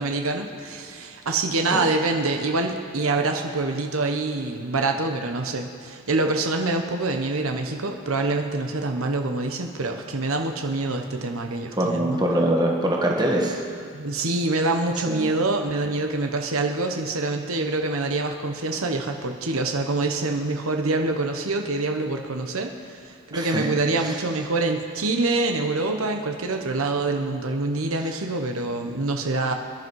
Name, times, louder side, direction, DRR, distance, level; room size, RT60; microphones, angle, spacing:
voice 1, 0.0-12.2 13.9-29.5, right 2 dB, 85° right, 4 dB, 1.1 m, -25 dB
voice 2, 11.8-13.6 15.1-15.3 23.3-23.7 24.0-24.1, right 1 dB, 20° right, -1 dB, 1.7 m, -23 dB
25.5 x 11.0 x 4.8 m, 2.3 s
head